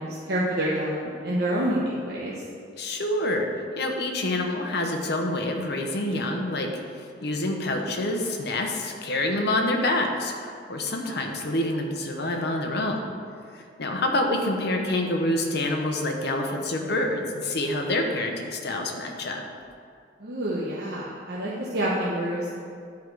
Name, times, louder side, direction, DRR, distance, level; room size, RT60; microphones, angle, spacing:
voice 1, 0.0-2.3 11.0-11.2 20.2-22.6, right 1 dB, 60° right, -6 dB, 1.1 m, -28 dB
voice 2, 2.8-3.5 3.8-6.7 7.2-13.0 13.5-19.4, left 1 dB, 60° left, 3 dB, 0.9 m, -27 dB
11.0 x 4.7 x 4.7 m, 2.3 s
head